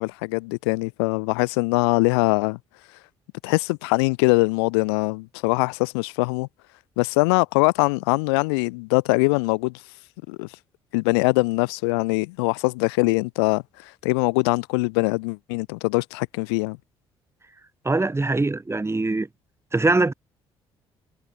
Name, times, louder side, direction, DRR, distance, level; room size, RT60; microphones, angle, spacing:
voice 1, 0.0-2.6 3.4-6.5 7.0-9.7 10.3-10.5 10.9-16.8, left 28 dB, 85° left, 0.6 m, -22 dB
voice 2, 17.8-19.3 19.7-20.1, right 3 dB, 20° right, 3.3 m, -22 dB
hypercardioid pair, 55°, 13 cm